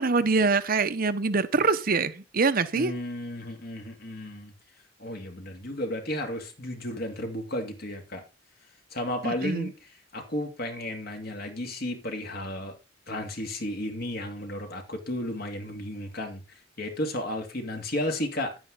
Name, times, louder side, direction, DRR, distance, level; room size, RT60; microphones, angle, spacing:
voice 1, 0.0-2.9 9.2-9.7, right 4 dB, 50° right, 0.9 m, -24 dB
voice 2, 2.7-4.5 5.0-8.2 8.9-9.7 10.1-12.8 13.1-18.6, left 1 dB, 55° left, 2.7 m, -33 dB
10.5 x 9.4 x 3.9 m
head